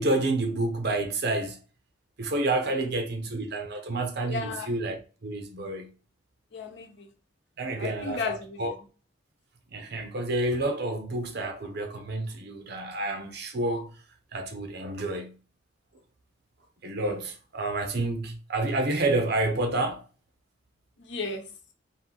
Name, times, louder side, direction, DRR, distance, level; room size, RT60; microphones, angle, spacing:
voice 1, 0.0-1.6 2.2-5.9 7.6-8.7 9.7-13.9 14.3-15.3 16.8-20.0, right 2 dB, 60° right, 0.8 m, -29 dB
voice 2, 2.7-3.2 4.3-4.8 6.5-7.1 7.6-8.8 21.0-21.4, left 4 dB, 65° left, 0.9 m, -35 dB
4.2 x 2.7 x 3.8 m
head